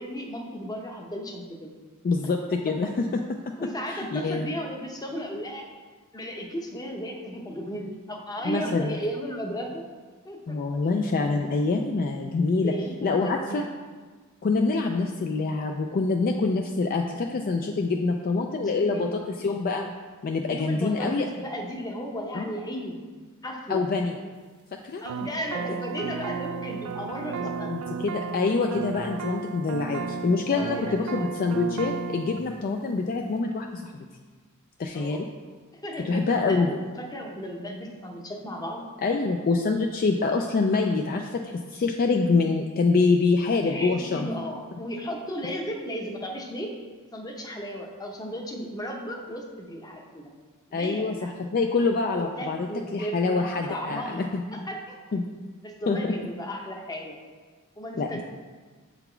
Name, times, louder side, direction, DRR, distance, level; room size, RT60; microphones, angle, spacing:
voice 1, 0.0-1.7 2.7-2.9 3.6-5.6 6.1-9.8 10.2-10.6 12.6-13.7 18.6-19.2 20.4-23.0 23.4-23.8 25.0-27.8 30.5-31.4 34.9-35.2 35.7-38.8 43.6-46.7 47.1-50.3 50.7-51.3 52.2-54.2 54.5-55.0 55.6-57.2 57.8-58.2, equal, 15° left, 2 dB, 0.7 m, -35 dB
voice 2, 2.0-2.9 3.9-4.5 8.4-9.0 10.5-12.7 13.0-13.7 14.4-19.1 19.4-19.9 20.2-21.3 22.3-22.4 23.7-24.2 24.8-25.0 27.7-34.0 34.8-35.3 36.0-36.7 39.0-44.3 50.7-52.7 52.9-54.3 55.1-55.2 55.9-56.1 58.0-58.2, left 3 dB, 40° left, 3 dB, 0.3 m, -25 dB
sound 1, 25.1-32.4, right 5 dB, 70° right, 0.3 m, -34 dB
6.9 x 4.0 x 4.4 m, 1.4 s
head